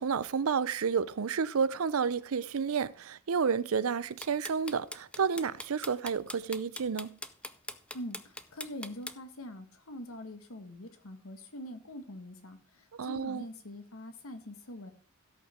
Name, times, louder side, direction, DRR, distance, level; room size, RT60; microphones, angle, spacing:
voice 1, 0.0-7.1 13.0-13.4, right 6 dB, 85° right, 0.5 m, -30 dB
sound 1, 4.0-9.1, left 2 dB, 5° left, 0.5 m, -41 dB
voice 2, 8.5-12.6 13.0-14.9, left 1 dB, 85° left, 1.6 m, -43 dB
16.5 x 5.6 x 3.5 m
head